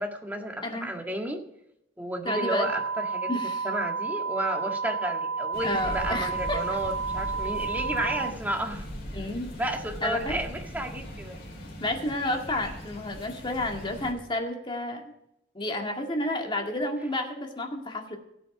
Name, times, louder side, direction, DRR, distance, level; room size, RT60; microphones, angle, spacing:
voice 1, 0.0-1.4 2.0-3.3 3.6-8.9 9.6-11.4, right 1 dB, 10° right, 2 dB, 1.7 m, -32 dB
voice 2, 2.3-2.7 3.3-3.7 5.6-6.6 9.1-9.5 10.0-10.4 11.8-15.1 15.5-18.2, left 1 dB, 25° left, 2 dB, 2.0 m, -31 dB
sound 1, 2.3-8.3, right 5 dB, 75° right, 0.4 m, -31 dB
sound 2, 5.5-14.1, equal, 60° left, 4.5 m, -40 dB
18.0 x 7.7 x 4.9 m, 0.82 s
head